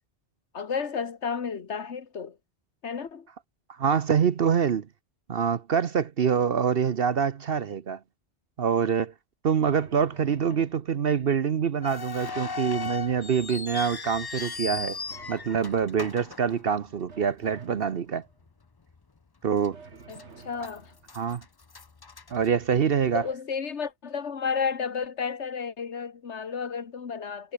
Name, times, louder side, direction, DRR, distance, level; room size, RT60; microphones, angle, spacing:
voice 1, 0.5-2.4 2.8-3.3 10.5-10.6 20.1-20.9 23.1-27.5, left 6 dB, 90° left, 1.7 m, -32 dB
voice 2, 3.8-4.9 5.3-8.0 8.6-9.1 9.4-15.0 15.3-18.2 19.4-19.8 21.1-21.4 22.3-23.2, right 7 dB, 60° right, 1.0 m, -25 dB
sound 1, 9.7-11.2 12.3-13.8 14.7-16.0 17.1-18.5 19.7-21.2 23.1-23.3, right 4 dB, 80° right, 2.2 m, -50 dB
sound 2, 11.8-17.1 17.4-17.5 18.3-18.5 18.9-19.0 19.6-20.2 20.6-23.1, left 4 dB, 25° left, 0.5 m, -37 dB
omnidirectional pair, 1.1 m